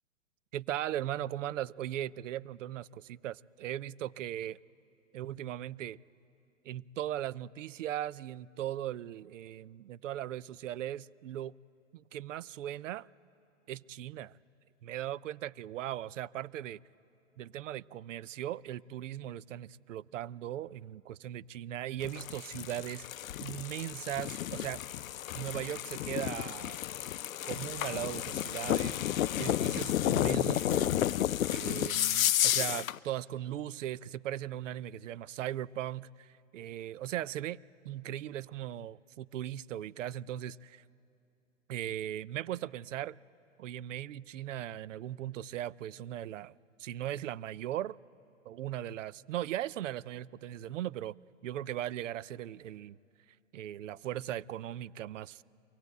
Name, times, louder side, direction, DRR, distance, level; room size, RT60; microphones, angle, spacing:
voice 1, 0.5-4.6 5.1-6.0 6.6-11.5 11.9-13.1 13.7-14.3 14.8-16.8 17.4-23.1 23.4-24.8 25.3-26.8 27.5-31.1 31.5-37.6 37.8-40.8 41.7-43.2 43.6-48.0 48.5-51.1 51.4-53.0 53.5-55.4, right 12 dB, 70° right, 0.5 m, -38 dB
sound 1, 22.0-33.0, left 12 dB, 90° left, 0.5 m, -32 dB
23.5 x 17.0 x 8.1 m
hypercardioid pair, 135°, 39 cm